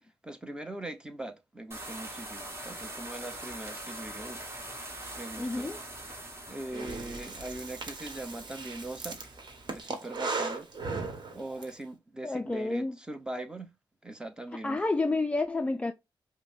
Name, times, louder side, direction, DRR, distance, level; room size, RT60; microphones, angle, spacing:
voice 1, 0.2-4.4 5.2-5.7 6.5-9.2 9.7-10.7 11.3-13.7 14.0-14.8, right 1 dB, 10° right, 0.8 m, -41 dB
sound 1, 1.7-9.8, right 1 dB, 30° right, 1.4 m, -43 dB
voice 2, 5.4-5.8 11.5-11.6 12.2-13.0 14.5-15.9, left 2 dB, 15° left, 0.4 m, -30 dB
Breathing, 6.7-11.7, right 3 dB, 55° right, 1.1 m, -37 dB
5.4 x 2.1 x 2.6 m
wide cardioid pair, 115°, 9 cm